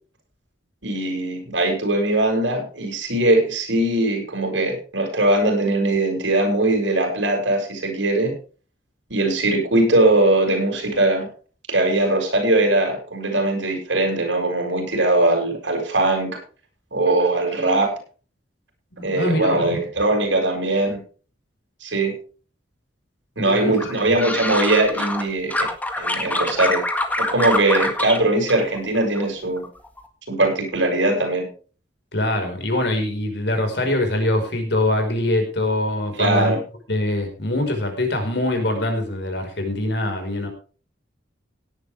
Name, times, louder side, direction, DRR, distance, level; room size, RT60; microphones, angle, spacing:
voice 1, 0.8-8.4 9.1-11.3 11.7-16.4 16.9-17.9 19.0-21.0 21.8-22.1 23.4-25.5 26.0-26.8 27.2-29.7 30.3-31.5 36.2-36.6, right 2 dB, 85° right, 2 dB, 6.7 m, -20 dB
voice 2, 18.9-19.7 23.4-23.9 32.1-36.6 36.9-40.5, left 1 dB, 65° left, 5 dB, 5.0 m, -23 dB
sound 1, 23.8-25.2 25.5-28.2 28.5-29.3 29.6-30.0, left 1 dB, 10° left, 1.8 m, -25 dB
17.5 x 11.0 x 3.5 m, 0.38 s
head